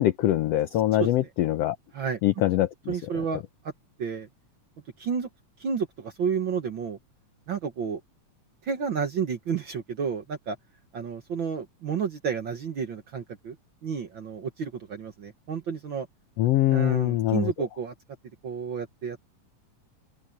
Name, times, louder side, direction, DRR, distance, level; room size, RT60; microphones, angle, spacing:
voice 1, 0.0-1.7 2.2-2.7 16.4-17.5, left 14 dB, 85° left, 1.4 m, -23 dB
voice 2, 0.9-1.3 1.9-2.2 2.9-3.7 4.0-4.3 5.0-5.3 5.6-7.0 7.5-8.0 8.6-10.6 10.9-13.6 13.8-16.1 16.7-17.9 18.4-19.2, right 6 dB, 55° right, 1.4 m, -31 dB
open air
omnidirectional pair, 3.7 m